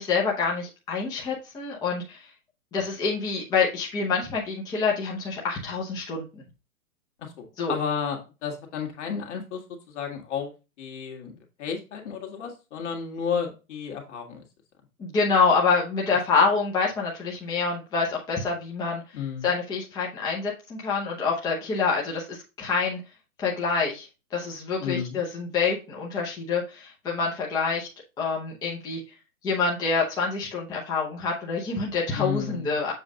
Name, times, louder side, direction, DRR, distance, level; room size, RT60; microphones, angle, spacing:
voice 1, 0.0-2.2 2.7-6.4 7.6-7.8 15.0-19.0 19.4-23.0 23.4-27.9 28.2-29.0 29.4-32.9, left 4 dB, 10° left, -3 dB, 0.8 m, -26 dB
voice 2, 7.2-9.6 9.9-10.5 10.8-14.4 19.1-19.5 24.8-25.2 32.2-32.8, left 7 dB, 50° left, 3 dB, 1.8 m, -32 dB
7.3 x 2.5 x 5.2 m, 0.29 s
hypercardioid pair, 145°, 44 cm